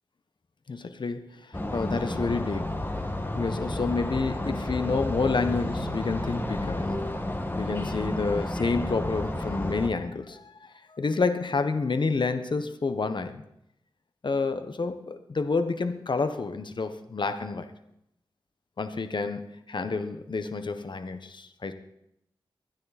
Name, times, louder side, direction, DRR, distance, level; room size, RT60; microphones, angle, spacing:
voice 1, 0.7-2.7 3.4-7.0 7.6-10.5 10.9-13.4 14.2-17.7 18.8-21.7, left 4 dB, 60° left, 9 dB, 1.3 m, -29 dB
sound 1, 1.5-9.9, left 1 dB, 25° left, 1.9 m, -31 dB
23.5 x 9.7 x 4.3 m, 0.79 s
cardioid pair, 45°, 9 cm